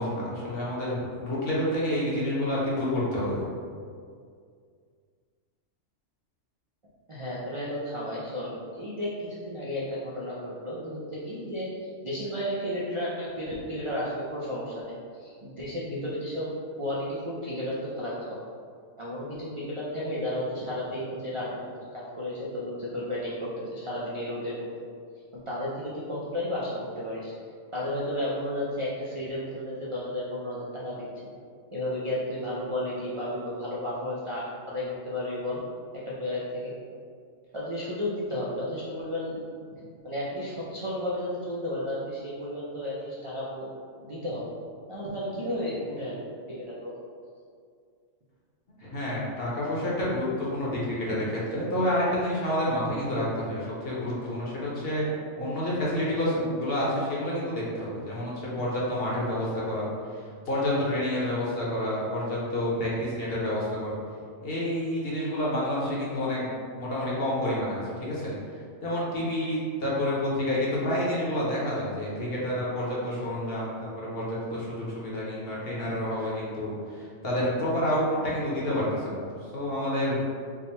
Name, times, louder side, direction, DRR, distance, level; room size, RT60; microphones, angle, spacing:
voice 1, 0.0-3.4 48.8-51.2 51.5-55.1 55.4-59.9 60.5-64.0 64.4-66.5 66.8-68.3 68.8-79.2 79.5-80.2, left 1 dB, 55° left, -6 dB, 1.0 m, -29 dB
voice 2, 7.1-16.5 16.8-18.5 19.0-23.4 23.7-24.7 25.3-27.3 27.7-30.9 31.7-35.6 36.0-36.7 37.5-39.4 40.0-43.7 44.0-44.5 44.9-46.9 51.1-51.2, left 1 dB, 55° right, -7 dB, 0.3 m, -33 dB
3.6 x 2.1 x 4.1 m, 2.2 s
omnidirectional pair, 1.3 m